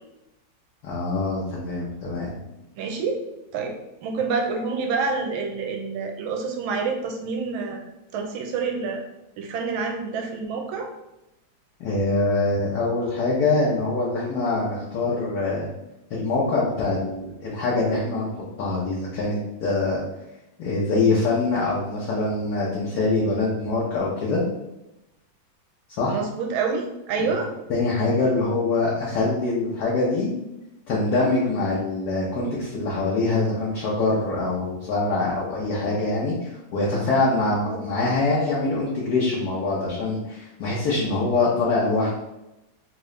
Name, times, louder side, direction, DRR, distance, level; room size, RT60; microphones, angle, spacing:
voice 1, 0.8-2.4 11.8-15.7 16.1-18.3 18.6-20.0 20.6-24.4 26.0-26.2 27.7-30.3 30.9-42.1, left 3 dB, 60° left, -6 dB, 1.2 m, -24 dB
voice 2, 2.8-3.2 3.5-3.8 4.0-7.8 8.1-9.0 9.4-10.9 26.1-27.5 37.7-37.8, right 4 dB, 80° right, 2 dB, 1.4 m, -27 dB
3.7 x 2.9 x 3.2 m, 0.93 s
omnidirectional pair, 2.2 m